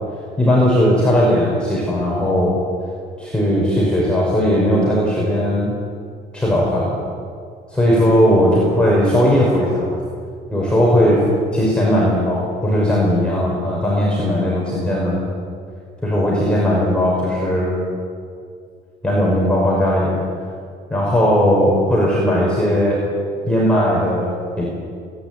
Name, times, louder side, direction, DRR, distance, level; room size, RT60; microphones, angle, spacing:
voice 1, 0.4-2.6 3.2-5.7 6.3-7.0 7.7-9.9 10.5-11.2 11.5-15.2 16.0-17.8 19.0-20.1 20.9-23.0 23.4-24.7, equal, 5° left, -5 dB, 5.5 m, -17 dB
27.0 x 11.0 x 9.1 m, 2.3 s
cardioid pair, 110°, 17 cm